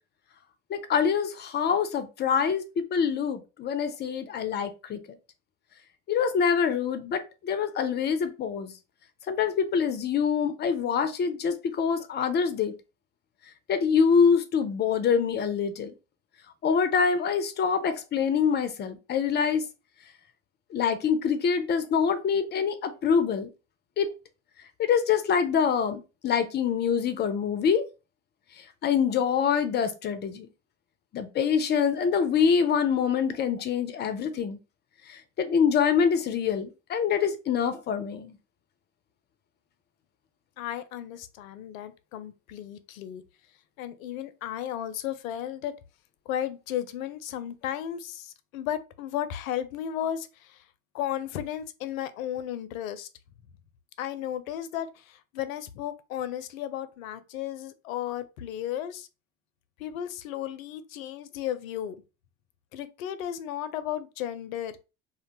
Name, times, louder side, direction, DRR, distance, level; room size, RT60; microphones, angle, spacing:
voice 1, 0.7-5.0 6.1-8.7 9.3-12.7 13.7-15.9 16.6-19.7 20.7-23.5 24.0-24.1 24.8-27.8 28.8-30.5 31.1-34.6 35.1-38.3, left 6 dB, 25° left, 0.4 m, -25 dB
voice 2, 40.6-43.2 43.8-45.7 46.3-50.6 50.9-53.1 54.0-59.1 59.8-62.0 62.7-64.8, left 11 dB, 80° left, 0.5 m, -34 dB
2.4 x 2.1 x 2.8 m
hypercardioid pair, 75°, 41 cm